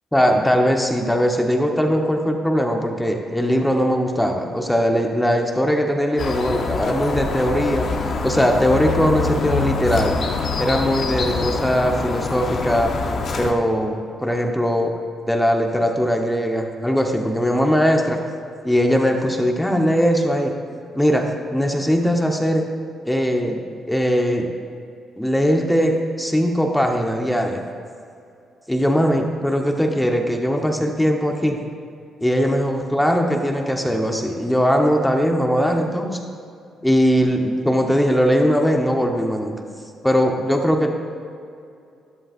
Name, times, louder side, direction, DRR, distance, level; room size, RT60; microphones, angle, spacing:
voice 1, 0.1-7.9 8.2-10.2 10.6-12.9 13.3-14.9 15.3-18.2 18.6-20.5 20.9-22.6 23.0-23.6 23.9-24.5 25.2-27.6 28.7-31.6 32.2-36.2 36.8-39.6 40.0-40.9, equal, 5° left, 2 dB, 1.1 m, -20 dB
sound 1, 6.2-13.5, left 4 dB, 55° left, 1.1 m, -25 dB
13.5 x 11.0 x 2.6 m, 2.5 s
cardioid pair, 90°, 0 cm